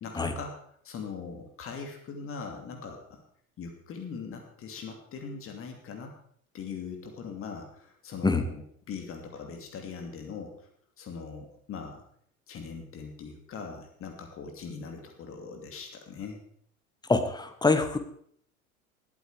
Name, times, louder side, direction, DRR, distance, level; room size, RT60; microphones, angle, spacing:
voice 1, 0.0-0.5 0.8-3.2 3.6-6.1 6.5-10.7 11.0-12.0 12.5-16.4, left 5 dB, 30° left, 3 dB, 2.7 m, -41 dB
voice 2, 17.1-18.0, left 3 dB, 10° left, 8 dB, 1.6 m, -24 dB
20.5 x 8.6 x 5.0 m, 0.64 s
figure-of-eight pair, 80°, 43 cm